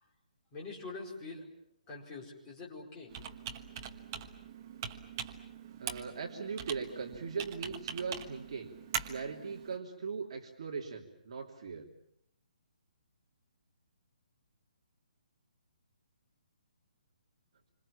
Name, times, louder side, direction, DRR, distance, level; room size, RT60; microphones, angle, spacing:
voice 1, 0.5-1.5 1.9-3.1, left 3 dB, 15° left, -2 dB, 4.8 m, -44 dB
Computer keyboard, 3.1-9.8, right 8 dB, 20° right, 1.4 m, -42 dB
voice 2, 5.8-8.7 9.0-11.9, right 5 dB, 45° right, 1 dB, 3.2 m, -39 dB
27.5 x 26.5 x 7.2 m, 0.73 s
hypercardioid pair, 175°, 5 cm